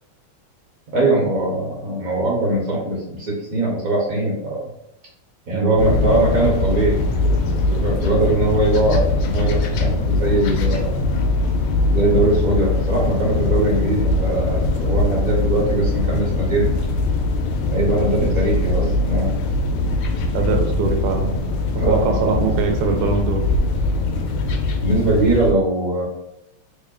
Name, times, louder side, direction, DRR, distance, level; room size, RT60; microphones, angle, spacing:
voice 1, 0.9-4.6 5.5-11.0 11.9-16.7 17.7-19.3 21.7-22.5 24.8-26.0, right 1 dB, 55° right, -4 dB, 1.1 m, -21 dB
sound 1, 5.8-25.5, left 2 dB, 75° left, 1.1 m, -21 dB
voice 2, 20.3-21.3 21.9-23.5, right 5 dB, 80° right, 5 dB, 1.4 m, -22 dB
3.6 x 2.1 x 3.6 m, 0.83 s
omnidirectional pair, 2.4 m